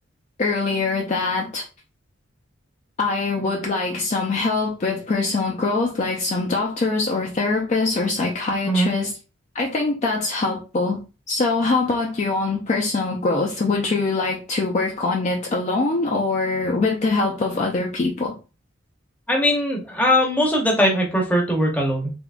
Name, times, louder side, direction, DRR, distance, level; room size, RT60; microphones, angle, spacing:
voice 1, 0.4-1.6 3.0-9.1 9.5-11.0 11.3-18.3, left 3 dB, 35° left, 0.4 m, -23 dB
voice 2, 19.3-22.1, equal, 10° left, 0.7 m, -20 dB
3.5 x 2.9 x 2.4 m
head